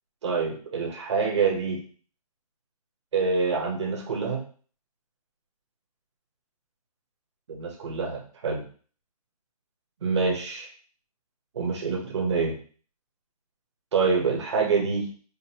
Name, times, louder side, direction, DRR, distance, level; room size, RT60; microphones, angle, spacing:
voice 1, 0.2-1.8 3.1-4.4 7.5-8.6 10.0-10.7 11.5-12.5 13.9-15.0, right 4 dB, 45° right, 0 dB, 1.1 m, -26 dB
5.2 x 2.2 x 2.9 m, 0.43 s
hypercardioid pair, 175°, 20 cm